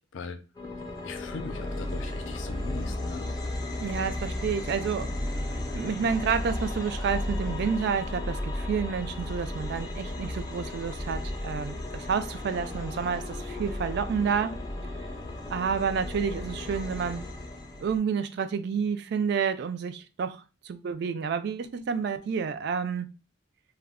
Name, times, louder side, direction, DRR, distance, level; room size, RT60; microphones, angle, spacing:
sound 1, 0.6-18.0, left 1 dB, 20° left, 0.5 m, -34 dB
voice 1, 1.0-3.6, left 4 dB, 80° left, 0.5 m, -40 dB
voice 2, 3.8-5.1 5.7-14.6 15.5-17.2 17.8-23.1, right 6 dB, 60° right, 0.3 m, -29 dB
2.2 x 2.1 x 3.5 m
head